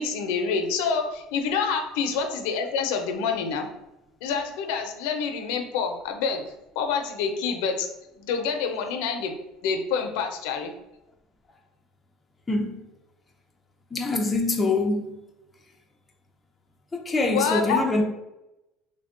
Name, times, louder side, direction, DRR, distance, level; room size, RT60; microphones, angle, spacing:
voice 1, 0.0-3.7 4.2-6.4 6.8-7.9 8.2-9.4 9.6-10.7 17.3-17.8, left 5 dB, 80° left, 0.5 m, -27 dB
voice 2, 12.5-12.8 13.9-15.1 16.9-18.0, left 2 dB, 15° left, 0.5 m, -24 dB
3.3 x 2.1 x 3.7 m
cardioid pair, 135°, 0 cm